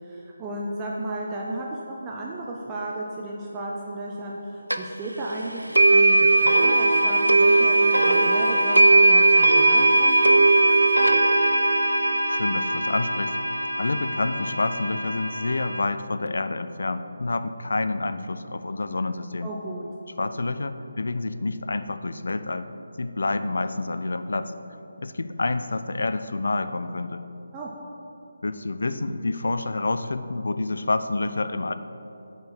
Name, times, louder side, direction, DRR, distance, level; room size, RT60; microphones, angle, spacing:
voice 1, 0.0-10.5 19.4-19.9 27.5-27.7, right 1 dB, 15° right, -3 dB, 0.5 m, -34 dB
sound 1, 4.7-4.8 5.7-15.8, right 2 dB, 85° right, 0.4 m, -19 dB
voice 2, 12.3-13.4 13.8-19.5 20.2-22.7 23.0-24.5 25.0-27.2 28.4-31.7, left 2 dB, 65° left, 11 dB, 0.3 m, -28 dB
5.5 x 4.5 x 5.8 m, 2.9 s
figure-of-eight pair, 150°, 0 cm